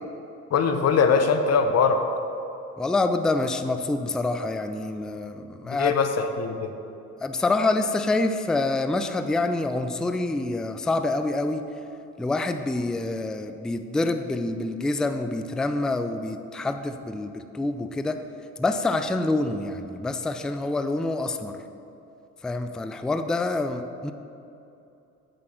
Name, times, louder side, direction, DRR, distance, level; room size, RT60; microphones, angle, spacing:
voice 1, 0.5-2.0 5.7-6.7, left 5 dB, 35° left, 7 dB, 1.0 m, -22 dB
voice 2, 2.8-5.9 7.2-11.7 12.2-18.2 18.6-21.6 22.4-24.1, left 2 dB, ahead, 8 dB, 0.4 m, -26 dB
8.3 x 6.4 x 6.1 m, 2.8 s
figure-of-eight pair, 55°, 43 cm